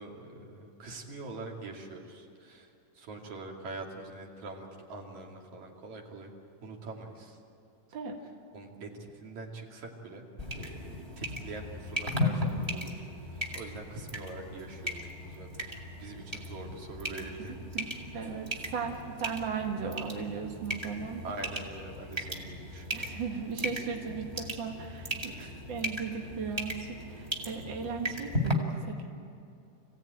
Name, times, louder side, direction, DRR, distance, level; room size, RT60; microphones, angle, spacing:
voice 1, 0.0-2.7 3.0-6.3 6.6-7.4 8.5-8.9 9.2-10.3 10.5-13.0 13.3-15.5 15.7-17.5 21.2-23.2 25.3-25.6, right 2 dB, 60° right, 0 dB, 3.6 m, -44 dB
sound 1, 10.4-28.5, left 1 dB, 15° right, 1.7 m, -37 dB
voice 2, 17.7-21.3 22.9-25.4 25.7-29.1, right 5 dB, 45° right, 1 dB, 2.0 m, -37 dB
26.5 x 16.5 x 9.1 m, 2.7 s
omnidirectional pair, 3.8 m